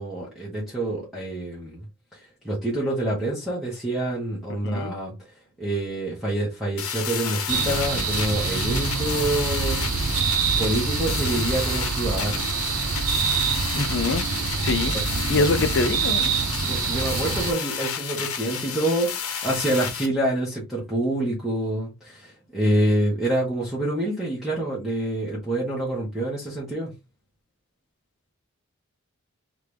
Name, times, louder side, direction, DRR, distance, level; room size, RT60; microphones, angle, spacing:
voice 1, 0.0-1.8 2.1-5.2 5.6-9.9 10.6-12.5 14.9-15.7 16.6-26.9, right 1 dB, ahead, 1.4 m, -27 dB
voice 2, 4.6-4.9 13.7-14.2 14.6-14.9 15.3-16.3, left 3 dB, 55° left, 0.5 m, -24 dB
sound 1, 6.8-20.1, left 7 dB, 90° left, 1.1 m, -31 dB
sound 2, 7.5-17.5, right 6 dB, 75° right, 0.5 m, -26 dB
3.6 x 3.4 x 3.3 m
head